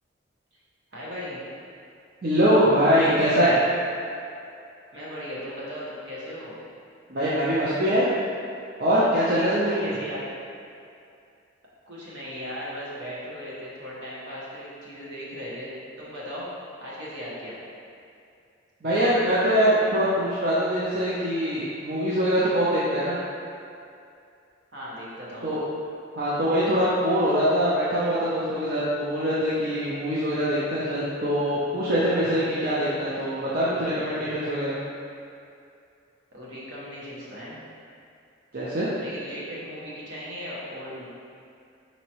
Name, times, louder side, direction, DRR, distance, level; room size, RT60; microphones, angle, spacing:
voice 1, 0.9-1.4 4.9-6.6 9.6-10.2 11.9-16.5 16.8-17.6 24.7-25.5 36.3-37.6 39.0-41.1, equal, 70° right, -7 dB, 1.1 m, -37 dB
voice 2, 2.2-3.6 7.1-8.1 8.8-9.9 18.8-23.2 25.4-25.6 26.2-34.7 38.5-38.9, equal, 50° right, -9 dB, 0.6 m, -23 dB
5.2 x 2.9 x 2.9 m, 2.5 s
head